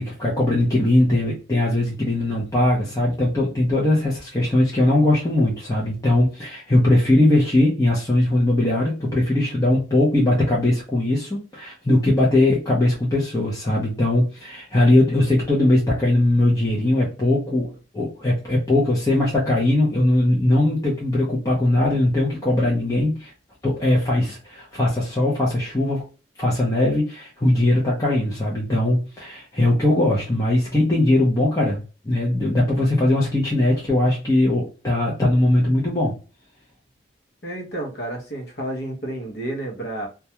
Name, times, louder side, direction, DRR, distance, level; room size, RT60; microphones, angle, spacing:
voice 1, 0.0-23.3 23.6-26.0 26.4-36.1, left 1 dB, 20° left, 0.6 m, -20 dB
voice 2, 37.4-40.1, right 1 dB, 60° left, 0.8 m, -30 dB
2.3 x 2.2 x 2.8 m
head